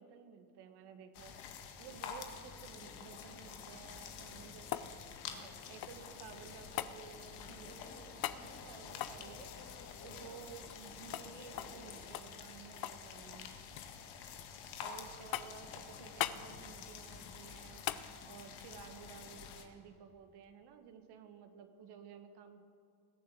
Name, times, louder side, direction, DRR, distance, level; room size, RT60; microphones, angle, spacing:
voice 1, 0.0-1.4 1.8-4.9 5.3-9.7 10.0-13.5 14.8-22.6, right 7 dB, 60° right, 7 dB, 1.8 m, -54 dB
sound 1, 1.1-19.7, left 7 dB, 75° left, 1.8 m, -49 dB
sound 2, 2.8-12.1, left 4 dB, 35° left, 2.1 m, -58 dB
sound 3, 4.1-6.2 6.8-7.0 8.2-8.4 8.9-10.9 11.1-11.3 11.6-11.8 12.1-13.1 13.3-13.9 14.4-14.9 15.3-15.7 16.2-16.4 17.9-18.1 20.4-20.5, left 13 dB, 55° left, 0.8 m, -41 dB
20.5 x 6.9 x 8.3 m, 2.5 s
hypercardioid pair, 70°, 44 cm